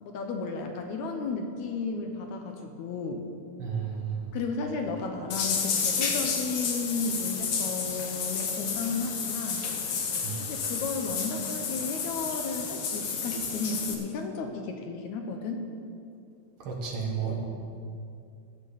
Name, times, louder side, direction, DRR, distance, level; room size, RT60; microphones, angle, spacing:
voice 1, 0.0-3.2 4.3-9.7 10.4-15.7 17.2-17.4, left 4 dB, 80° left, 4 dB, 2.3 m, -33 dB
voice 2, 3.6-4.2 10.2-10.4 16.6-17.3, right 7 dB, 55° right, -1 dB, 2.1 m, -32 dB
sound 1, 5.3-13.9, left 5 dB, 60° left, 1.8 m, -31 dB
16.0 x 10.5 x 4.1 m, 2.4 s
omnidirectional pair, 3.3 m